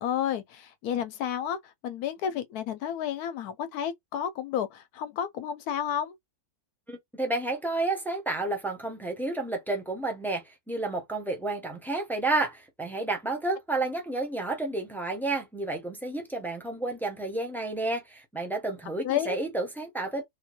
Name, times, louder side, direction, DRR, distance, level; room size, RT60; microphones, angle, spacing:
voice 1, 0.0-6.2 19.0-19.4, left 9 dB, 80° left, 1.1 m, -31 dB
voice 2, 6.9-20.2, right 2 dB, ahead, 0.5 m, -31 dB
3.6 x 2.4 x 2.9 m
omnidirectional pair, 1.7 m